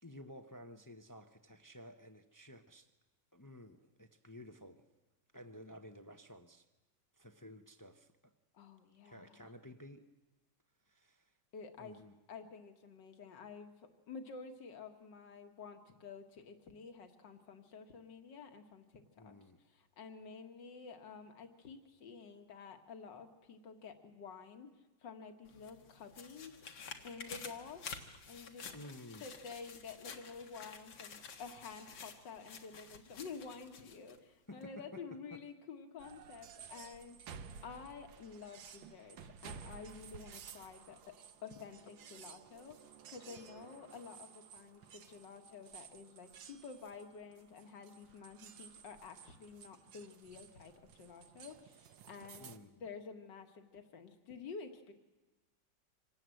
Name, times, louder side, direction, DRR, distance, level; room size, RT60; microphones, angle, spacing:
voice 1, 0.0-2.9 3.3-4.8 5.3-6.7 7.1-8.3 9.0-10.1 10.9-11.3 11.8-12.1 19.2-19.6 28.7-29.2 34.5-35.0 35.3-35.4 52.4-52.9, left 1 dB, 25° left, 0.4 m, -53 dB
voice 2, 8.5-9.5 11.5-12.0 12.3-13.7 14.1-19.4 19.7-24.7 25.0-26.6 27.0-27.8 28.3-28.7 29.2-41.2 41.4-42.8 43.1-52.5 52.8-54.9, left 5 dB, 70° left, 2.3 m, -50 dB
sound 1, 25.4-34.2 34.6-34.7, left 5 dB, 90° left, 2.4 m, -51 dB
sound 2, 36.0-52.6, right 7 dB, 85° right, 1.7 m, -55 dB
25.5 x 18.5 x 7.8 m
omnidirectional pair, 2.0 m